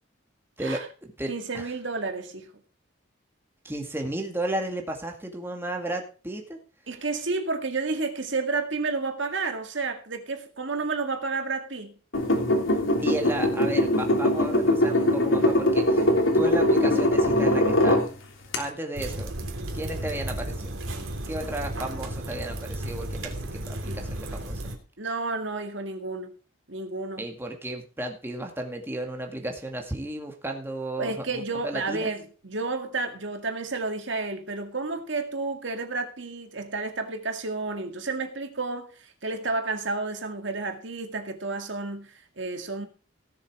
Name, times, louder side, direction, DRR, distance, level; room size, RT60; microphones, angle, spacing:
voice 1, 0.6-1.7 3.6-6.6 13.0-16.1 16.3-18.0 18.6-19.3 19.7-20.7 21.3-24.6 27.2-32.1, right 1 dB, 10° right, 2.1 m, -33 dB
voice 2, 1.3-2.5 6.9-12.0 23.9-24.0 25.0-26.3 26.7-27.3 31.0-42.9, right 3 dB, 65° right, 2.0 m, -31 dB
sound 1, 12.1-18.1 18.5-18.6, left 1 dB, 80° left, 3.3 m, -22 dB
sound 2, 18.9-24.8, right 1 dB, 85° right, 3.1 m, -34 dB
17.0 x 7.3 x 4.9 m
head